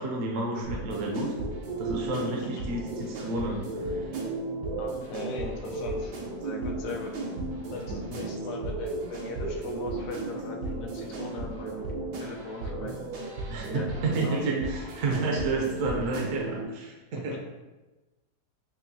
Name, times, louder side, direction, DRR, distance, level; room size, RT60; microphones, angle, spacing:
voice 1, 0.0-1.3 1.8-4.1 8.1-8.2 13.5-17.4, right 2 dB, 65° right, -1 dB, 0.9 m, -31 dB
sound 1, 0.6-16.6, right 2 dB, 80° right, 1.3 m, -34 dB
voice 2, 4.8-6.1 6.4-7.2 7.7-11.9 12.2-12.9 13.7-13.9 14.1-14.4 17.3-17.4, left 3 dB, 65° left, 0 dB, 0.9 m, -39 dB
5.5 x 2.5 x 2.6 m, 1.1 s
omnidirectional pair, 1.8 m